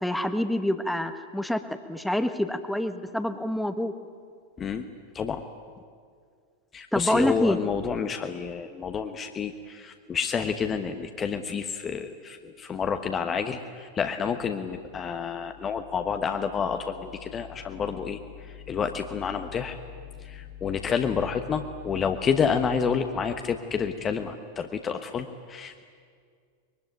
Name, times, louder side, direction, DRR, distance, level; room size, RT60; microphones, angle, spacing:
voice 1, 0.0-3.9 6.9-7.6, left 1 dB, ahead, 9 dB, 1.5 m, -26 dB
voice 2, 6.7-19.8 20.2-25.8, left 6 dB, 25° left, 6 dB, 1.2 m, -29 dB
24.0 x 22.5 x 9.3 m, 2.1 s
figure-of-eight pair, 90°, 0 cm